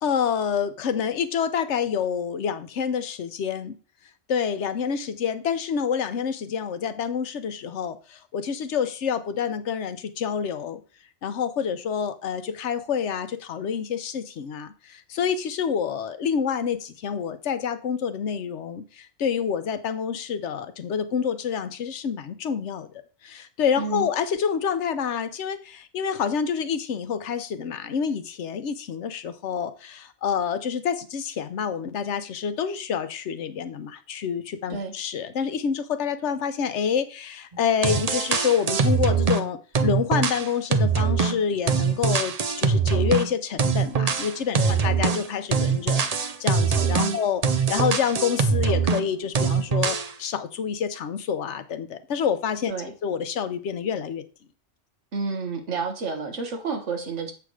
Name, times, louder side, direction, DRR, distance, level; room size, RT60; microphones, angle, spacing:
voice 1, 0.0-3.8 4.3-10.8 11.2-47.4 47.7-52.7 53.0-54.2, left 7 dB, 80° left, 11 dB, 1.1 m, -27 dB
voice 2, 23.8-24.1 34.7-34.9 44.6-44.8 46.9-47.2 52.7-52.9 55.1-57.3, right 4 dB, 85° right, 5 dB, 1.6 m, -30 dB
sound 1, 37.5-37.6 37.8-39.5 39.7-43.3 43.6-49.1 49.3-50.1, right 5 dB, 40° right, 0.6 m, -23 dB
8.0 x 3.4 x 6.2 m, 0.36 s
omnidirectional pair, 1.2 m